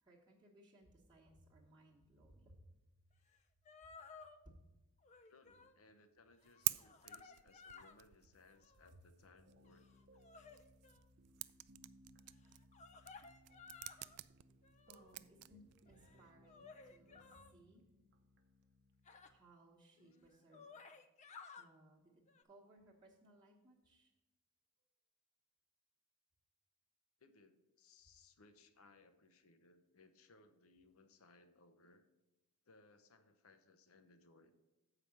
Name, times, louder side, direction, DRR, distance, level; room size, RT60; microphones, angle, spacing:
voice 1, 0.0-2.8 3.8-4.0 4.4-4.7 8.8-9.0 14.9-17.8 19.3-20.7 21.5-24.1, right 1 dB, 20° right, -6 dB, 1.1 m, -64 dB
sound 1, 3.3-3.4 3.7-4.4 5.0-5.8 6.3-8.0 8.5-9.0 9.6-11.0 12.4-14.2 14.6-15.2 15.9-17.5 19.1-19.3 20.0-20.1 20.3-21.7 22.3-22.4, left 5 dB, 30° left, 0.4 m, -58 dB
voice 2, 5.3-9.9 20.0-20.2 27.2-32.0 32.7-34.5, left 3 dB, 70° left, 9 dB, 0.8 m, -66 dB
sound 2, 6.4-16.2, right 20 dB, 80° right, 0.3 m, -48 dB
sound 3, 9.5-19.4, equal, 50° right, 0.7 m, -67 dB
7.5 x 4.9 x 7.0 m, 1.1 s
head